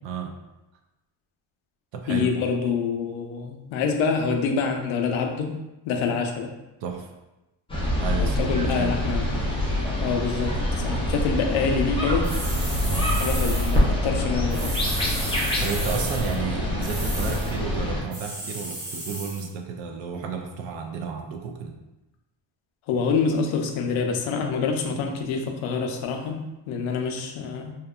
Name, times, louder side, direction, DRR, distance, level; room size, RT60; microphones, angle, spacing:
voice 1, 0.0-0.3 1.9-2.3 6.8-7.1 8.0-9.0 12.7-13.1 15.6-21.7, right 6 dB, 70° right, 4 dB, 0.5 m, -32 dB
voice 2, 2.1-5.6 5.9-6.5 8.1-9.5 10.0-12.3 13.2-14.8 22.9-27.7, left 5 dB, 90° left, 3 dB, 0.5 m, -26 dB
sound 1, 7.7-18.0, left 1 dB, 15° left, 0.4 m, -25 dB
sound 2, 12.2-13.8 14.5-16.4 16.8-17.5 18.1-19.5, right 1 dB, 55° right, 1.0 m, -34 dB
2.8 x 2.2 x 2.3 m, 0.98 s
cardioid pair, 135°, 46 cm